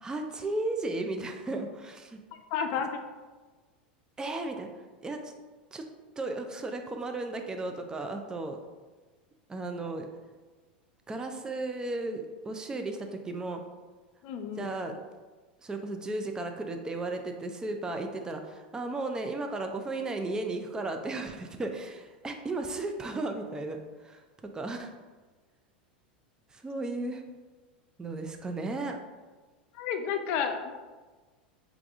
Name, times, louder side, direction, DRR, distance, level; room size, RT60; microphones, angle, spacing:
voice 1, 0.0-2.2 4.2-4.7 5.0-5.3 5.7-5.8 6.2-8.6 9.5-10.1 11.1-13.6 14.6-14.9 15.6-23.8 24.0-24.9 26.5-27.2 28.0-29.0, right 2 dB, 15° right, 5 dB, 0.4 m, -35 dB
voice 2, 2.5-3.0 14.2-14.7 29.7-30.8, left 7 dB, 50° left, 6 dB, 0.5 m, -31 dB
4.6 x 2.5 x 3.5 m, 1.3 s
figure-of-eight pair, 85°, 5 cm